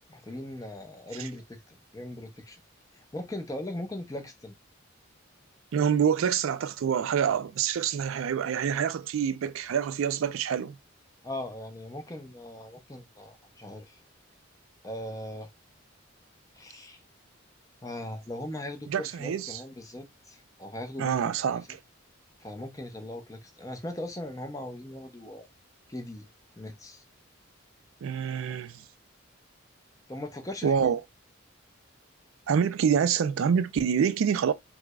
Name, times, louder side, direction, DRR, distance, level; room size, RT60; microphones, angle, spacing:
voice 1, 0.1-2.6 3.0-4.5 11.2-14.0 14.8-15.5 16.5-17.0 17.8-21.1 21.4-21.6 22.4-25.5 25.9-26.3 26.6-27.0 30.1-31.0, left 1 dB, 15° left, 0.6 m, -39 dB
voice 2, 5.7-10.8 18.9-19.6 21.0-21.8 28.0-28.8 30.6-31.0 32.5-34.5, right 7 dB, 75° right, 0.3 m, -26 dB
4.6 x 2.1 x 2.2 m
head